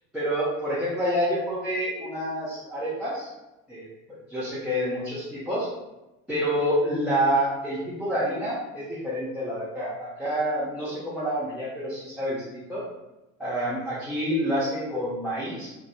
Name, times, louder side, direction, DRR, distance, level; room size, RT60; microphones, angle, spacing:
voice 1, 0.1-3.3 3.7-5.7 6.3-12.8 13.4-15.7, equal, ahead, -10 dB, 0.5 m, -28 dB
2.2 x 2.1 x 2.9 m, 0.98 s
figure-of-eight pair, 65°, 41 cm